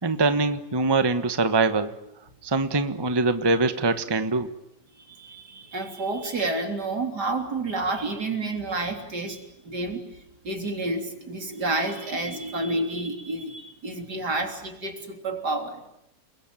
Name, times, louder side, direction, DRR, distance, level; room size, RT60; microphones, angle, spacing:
voice 1, 0.0-1.9 2.4-4.5, right 3 dB, 15° right, 9 dB, 1.2 m, -23 dB
voice 2, 5.0-15.8, right 2 dB, 70° right, 4 dB, 4.1 m, -30 dB
30.0 x 22.0 x 9.0 m, 0.81 s
omnidirectional pair, 1.8 m